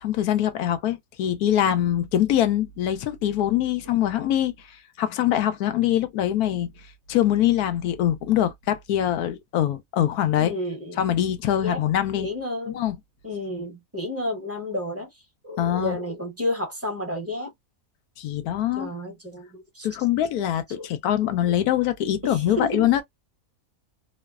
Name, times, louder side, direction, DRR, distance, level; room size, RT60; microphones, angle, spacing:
voice 1, 0.0-4.5 5.0-6.7 7.1-10.6 11.0-12.3 12.7-13.0 15.6-16.0 18.2-18.9 19.8-23.0, left 11 dB, 90° left, 1.1 m, -23 dB
voice 2, 10.4-11.0 11.6-11.8 12.1-12.8 13.2-15.1 15.4-17.5 18.7-19.9 20.7-20.9 21.4-21.5 22.2-22.9, left 1 dB, 10° right, 0.9 m, -31 dB
3.1 x 2.0 x 2.2 m
omnidirectional pair, 1.5 m